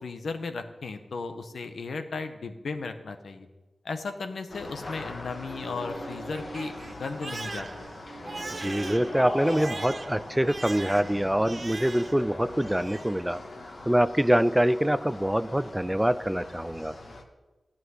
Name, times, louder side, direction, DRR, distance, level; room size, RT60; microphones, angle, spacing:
voice 1, 0.0-3.5 3.8-7.7, left 4 dB, 75° left, 7 dB, 1.2 m, -35 dB
sound 1, 4.5-17.2, left 2 dB, 45° left, 1.6 m, -40 dB
Crying sobbing, 5.3-12.3 12.6-13.2, right 3 dB, 40° right, 0.7 m, -41 dB
voice 2, 8.6-13.4 13.9-17.0, equal, 5° right, 15 dB, 0.3 m, -25 dB
14.5 x 6.1 x 9.5 m, 1.1 s
wide cardioid pair, 115°, 0 cm